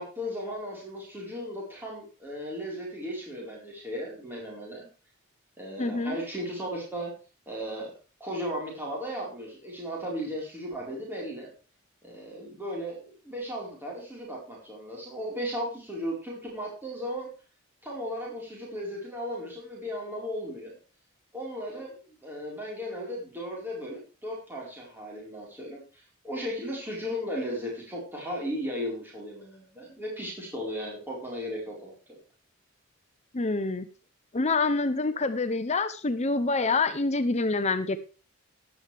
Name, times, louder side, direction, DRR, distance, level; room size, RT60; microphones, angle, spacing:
voice 1, 0.0-4.9 5.6-7.1 7.5-7.9 8.2-11.5 12.0-17.3 17.8-20.8 21.3-32.2, equal, 10° right, -4 dB, 4.5 m, -36 dB
voice 2, 5.8-6.2 33.3-33.9 34.3-38.0, left 3 dB, 30° left, 11 dB, 0.7 m, -26 dB
14.0 x 11.0 x 3.5 m, 0.33 s
head